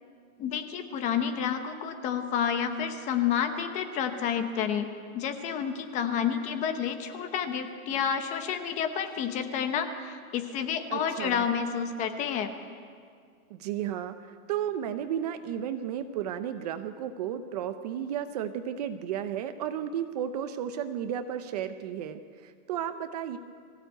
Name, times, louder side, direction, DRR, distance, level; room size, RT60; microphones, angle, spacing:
voice 1, 0.4-4.9 5.1-12.5, left 8 dB, 15° left, 8 dB, 0.9 m, -30 dB
voice 2, 10.9-11.5 13.5-23.4, right 9 dB, 30° right, 10 dB, 0.7 m, -33 dB
23.0 x 15.5 x 9.0 m, 2.2 s
hypercardioid pair, 165°, 43 cm